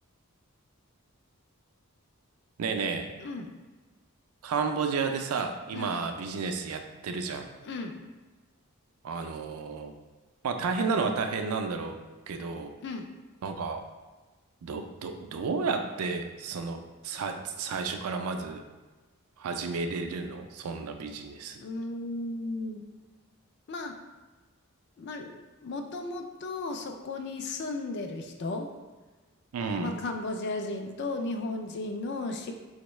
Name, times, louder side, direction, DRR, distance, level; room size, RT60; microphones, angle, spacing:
voice 1, 2.6-3.1 4.4-7.5 9.0-9.9 10.4-12.0 12.3-12.7 13.4-13.8 14.6-18.6 19.4-21.6 29.5-29.9, right 4 dB, 85° right, 6 dB, 0.4 m, -32 dB
voice 2, 3.2-3.5 5.7-6.0 7.6-8.1 12.8-13.2 21.6-22.8 23.7-24.0 25.0-28.7 29.7-32.5, left 2 dB, 50° left, 5 dB, 0.3 m, -35 dB
4.4 x 2.1 x 3.0 m, 1.2 s
head